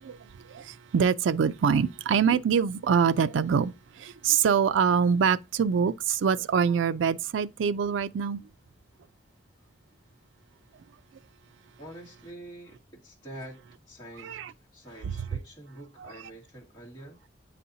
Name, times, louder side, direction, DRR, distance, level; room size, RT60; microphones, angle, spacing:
voice 1, 0.0-8.4 14.2-14.5 15.0-15.1, right 6 dB, 80° right, 0.4 m, -25 dB
voice 2, 11.8-13.6 13.9-14.4 14.7-17.2, right 1 dB, 20° left, 2.1 m, -46 dB
9.2 x 4.2 x 2.7 m
head